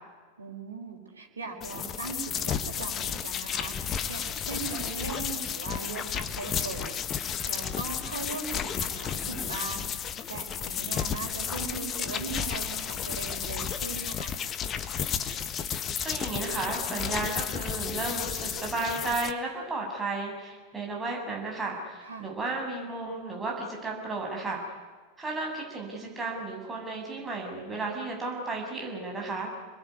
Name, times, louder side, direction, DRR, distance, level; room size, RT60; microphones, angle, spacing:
voice 1, 0.4-7.0 7.5-9.9 10.3-14.3 22.0-22.4, right 4 dB, 75° right, 2 dB, 4.9 m, -39 dB
sound 1, 1.6-19.3, left 8 dB, 30° left, 1.5 m, -32 dB
voice 2, 16.0-24.6 25.2-29.5, right 3 dB, 15° right, -1 dB, 7.4 m, -33 dB
28.0 x 21.0 x 9.7 m, 1.4 s
figure-of-eight pair, 90°, 0 cm